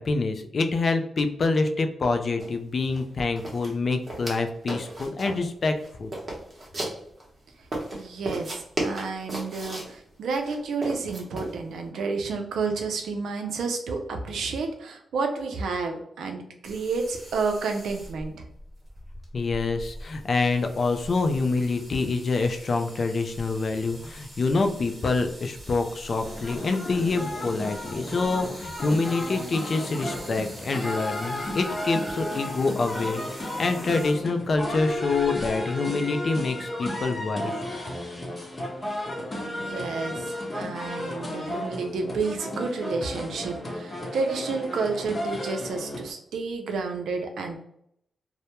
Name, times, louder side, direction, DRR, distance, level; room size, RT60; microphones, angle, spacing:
voice 1, 0.0-6.1 19.3-37.6, left 3 dB, 55° left, 6 dB, 0.3 m, -26 dB
sound 1, 2.4-2.5 2.8-3.0 3.4-4.4 4.7-5.5 5.8-7.3 7.7-9.9 10.4-11.5, right 1 dB, 40° right, 0.8 m, -34 dB
voice 2, 7.9-18.4 39.4-47.6, right 4 dB, 85° right, 4 dB, 0.4 m, -30 dB
sound 2, 16.6-35.6, equal, 15° right, 1.0 m, -45 dB
sound 3, 26.2-46.1, left 1 dB, 30° left, 0.7 m, -34 dB
2.1 x 2.0 x 2.9 m, 0.72 s
cardioid pair, 70°, 0 cm